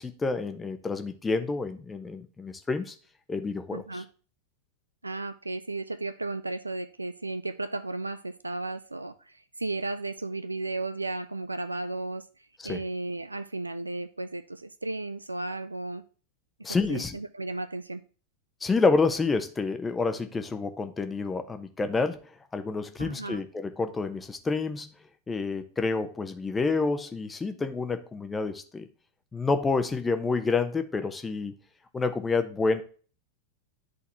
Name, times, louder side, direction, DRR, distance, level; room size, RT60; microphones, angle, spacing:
voice 1, 0.0-2.9 3.3-4.0 12.6-12.8 16.6-17.2 18.6-22.2 22.5-24.9 25.3-28.9 29.3-31.5 31.9-32.8, left 4 dB, 15° left, 8 dB, 0.9 m, -28 dB
voice 2, 3.7-4.1 5.0-12.2 12.6-16.0 16.9-18.0 23.0-23.4, right 2 dB, 80° right, 13 dB, 0.4 m, -34 dB
10.5 x 4.1 x 2.8 m, 0.39 s
figure-of-eight pair, 90°, 0 cm